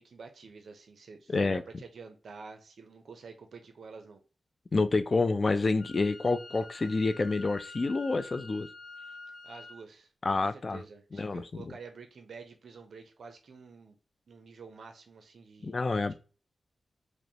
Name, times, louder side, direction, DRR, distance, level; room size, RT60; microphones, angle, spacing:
voice 1, 0.0-4.2 9.4-10.1 10.4-14.0 14.3-15.8, right 5 dB, 70° right, 0.5 m, -49 dB
voice 2, 1.3-1.6 4.7-8.7 10.2-10.8 11.1-11.4 15.6-16.1, left 3 dB, 40° left, 0.3 m, -28 dB
Wind instrument woodwind instrument, 5.8-9.8, left 3 dB, 80° left, 1.1 m, -47 dB
5.0 x 2.0 x 2.7 m
wide cardioid pair, 105°, 0 cm